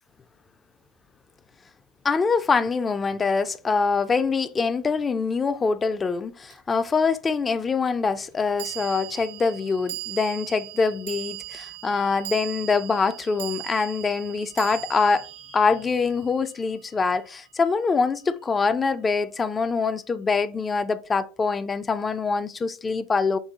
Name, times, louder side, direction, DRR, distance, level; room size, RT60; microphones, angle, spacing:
voice 1, 2.0-23.4, left 4 dB, 15° left, 0.3 m, -24 dB
sound 1, 6.5-6.6 8.6-17.0, right 17 dB, 55° right, 0.4 m, -38 dB
6.2 x 2.1 x 2.9 m
figure-of-eight pair, 90°, 0 cm